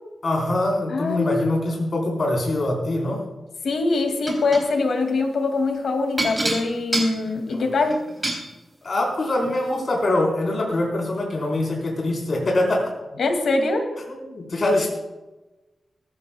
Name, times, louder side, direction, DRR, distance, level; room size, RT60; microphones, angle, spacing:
voice 1, 0.2-3.2 7.5-7.6 8.8-12.9 14.1-14.9, left 1 dB, 45° left, -2 dB, 4.3 m, -23 dB
voice 2, 0.9-1.4 3.6-8.0 13.2-13.9, left 3 dB, 70° left, 4 dB, 2.3 m, -23 dB
sound 1, 4.3-4.6 6.2-8.4 9.4-9.5 10.0-10.1, right 1 dB, 15° right, 3.4 m, -26 dB
20.5 x 15.0 x 2.3 m, 1.1 s
wide cardioid pair, 150°, 0 cm